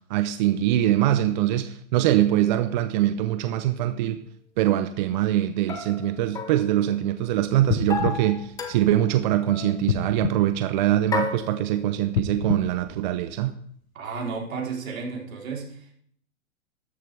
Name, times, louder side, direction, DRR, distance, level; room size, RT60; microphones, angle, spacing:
voice 1, 0.1-4.2 4.6-13.5, right 12 dB, 35° right, 0.5 m, -23 dB
sound 1, 3.3-3.4 5.7-7.3 7.9-9.1 9.5-9.8 11.1-12.1, left 5 dB, 10° left, 0.7 m, -33 dB
sound 2, 7.6-9.3 9.8-11.4 12.0-13.7 14.3-14.4, left 8 dB, 80° left, 0.9 m, -31 dB
voice 2, 13.9-15.9, right 5 dB, 70° right, 3.6 m, -33 dB
13.0 x 10.5 x 3.3 m
hypercardioid pair, 130°, 42 cm